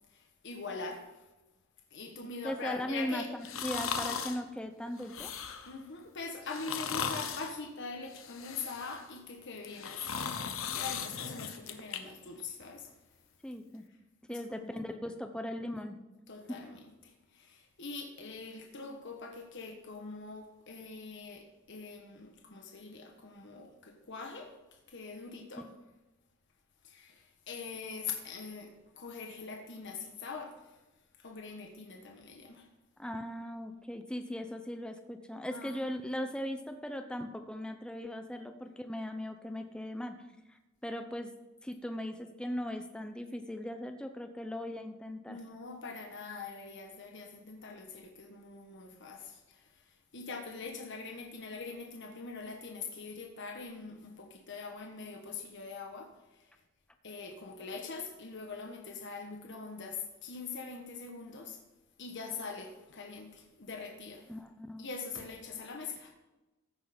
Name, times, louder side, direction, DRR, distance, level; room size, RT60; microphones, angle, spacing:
voice 1, 0.1-1.2 1.9-3.3 5.7-12.9 14.3-14.7 16.3-25.7 26.8-30.8 31.2-32.7 35.5-35.9 45.3-56.5 57.0-61.6 62.0-64.3 64.8-66.1, left 4 dB, 60° left, 2 dB, 1.3 m, -43 dB
voice 2, 2.4-5.3 13.4-13.8 14.3-16.0 16.5-16.6 25.6-25.7 33.0-40.2 40.8-41.3 41.6-45.4 64.3-64.9, equal, 5° left, 6 dB, 0.7 m, -38 dB
sound 1, 3.4-4.4 5.0-5.7 6.4-7.5 8.1-9.0 9.6-12.0 12.4-12.5, left 6 dB, 80° left, 1.0 m, -37 dB
14.5 x 6.5 x 5.2 m, 1.1 s
head